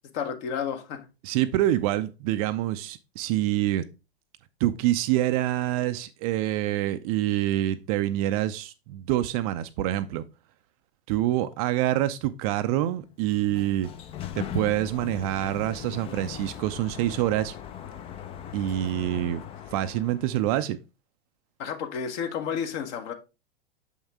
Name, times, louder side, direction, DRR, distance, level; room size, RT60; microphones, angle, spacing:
voice 1, 0.1-1.1 21.6-23.1, left 7 dB, 45° left, 1.2 m, -31 dB
voice 2, 1.2-3.8 4.6-10.2 11.1-13.9 14.3-17.5 18.5-19.4 19.7-20.8, right 13 dB, 35° right, 0.5 m, -26 dB
Sliding door, 13.1-20.5, left 10 dB, 20° left, 0.4 m, -39 dB
7.0 x 5.5 x 3.5 m
figure-of-eight pair, 100°, 32 cm